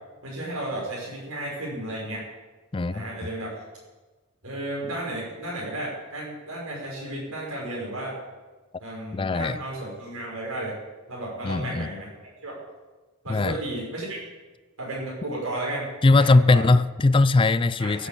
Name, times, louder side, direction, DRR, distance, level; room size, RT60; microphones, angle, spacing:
voice 1, 0.2-2.2 2.9-3.6 4.4-8.2 8.8-10.8 11.1-12.1 12.4-12.5 13.2-14.2 14.8-16.7 17.8-18.1, right 1 dB, 80° right, -5 dB, 5.9 m, -33 dB
voice 2, 2.7-3.1 9.1-9.6 11.4-11.9 13.3-13.6 16.0-18.1, left 3 dB, 25° left, 14 dB, 0.4 m, -20 dB
16.0 x 8.3 x 8.4 m, 1.2 s
head